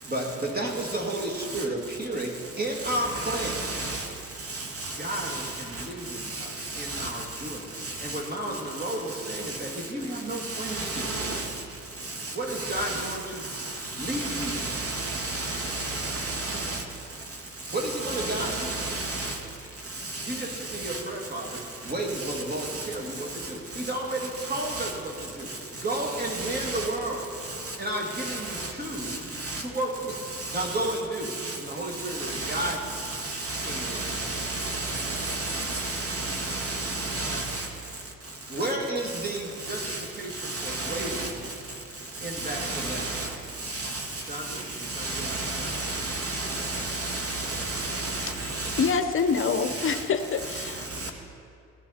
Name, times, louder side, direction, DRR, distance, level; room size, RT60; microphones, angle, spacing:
voice 1, 0.0-4.0 5.0-7.7 8.0-11.5 12.3-13.5 13.9-14.9 17.7-18.9 20.3-27.3 27.8-30.2 30.5-33.1 33.6-34.3 38.5-41.5 42.2-43.2 44.2-45.7, right 1 dB, 30° right, 2.3 m, -33 dB
voice 2, 2.8-4.1 4.5-5.8 6.2-7.1 7.8-8.2 9.3-9.6 10.4-11.5 12.1-13.2 13.5-16.8 17.7-19.4 20.0-20.4 20.8-21.0 22.2-22.9 24.5-24.9 26.2-26.9 27.6-27.8 28.1-28.7 29.0-29.6 30.4-30.8 31.2-31.6 32.1-37.7 39.7-40.0 40.4-41.3 42.4-43.3 43.6-48.9 49.4-50.0 50.4-51.1, right 2 dB, 50° right, 1.9 m, -33 dB
voice 3, 48.8-51.1, left 5 dB, 45° left, 0.7 m, -26 dB
16.0 x 10.5 x 4.3 m
cardioid pair, 90°, 30 cm